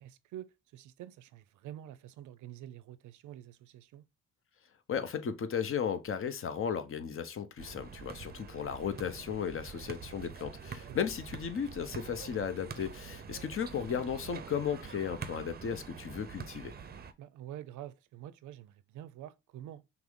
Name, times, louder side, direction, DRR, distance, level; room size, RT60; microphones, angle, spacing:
voice 1, 0.0-4.0 10.9-11.0 17.2-19.8, right 12 dB, 75° right, 0.5 m, -47 dB
voice 2, 4.9-16.7, left 7 dB, 45° left, 0.7 m, -35 dB
sound 1, 7.6-17.1, right 6 dB, 30° right, 0.6 m, -46 dB
5.9 x 2.0 x 3.6 m
cardioid pair, 90°, 30 cm